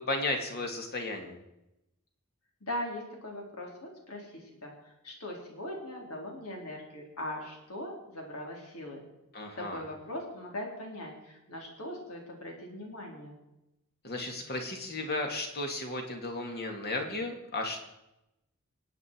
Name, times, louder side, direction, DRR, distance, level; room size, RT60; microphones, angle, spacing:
voice 1, 0.0-1.4 9.3-9.8 14.0-17.8, left 2 dB, 45° left, 3 dB, 2.5 m, -34 dB
voice 2, 2.6-9.1 9.6-13.4, left 1 dB, 70° left, 0 dB, 4.0 m, -40 dB
26.0 x 8.8 x 4.7 m, 0.90 s
head